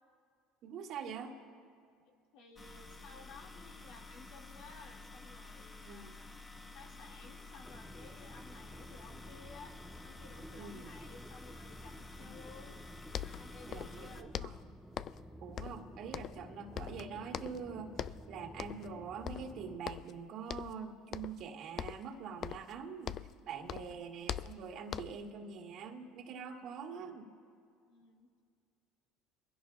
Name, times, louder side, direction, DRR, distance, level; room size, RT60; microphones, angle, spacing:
voice 1, 0.6-1.3 5.9-6.2 10.5-10.9 12.2-12.3 13.7-14.5 15.1-23.2 23.5-27.3, right 6 dB, 60° right, 2 dB, 1.9 m, -45 dB
voice 2, 2.1-6.4 6.7-9.7 10.0-12.8 13.1-14.3 23.7-24.0 27.9-28.3, left 4 dB, 70° left, 0 dB, 2.0 m, -56 dB
sound 1, 2.6-14.2, left 3 dB, 25° left, 1.2 m, -51 dB
sound 2, 7.6-19.8, right 1 dB, 5° right, 0.6 m, -53 dB
sound 3, 12.8-12.9 13.1-14.0 14.3-15.3 15.6-16.5 16.8-17.7 18.0-18.3 18.6-19.0 19.3-20.2 20.5-20.8 21.1-21.5 21.8-23.4 23.7-25.3, left 10 dB, 50° left, 0.4 m, -42 dB
23.5 x 16.0 x 2.3 m, 2.3 s
supercardioid pair, 90°, 0 cm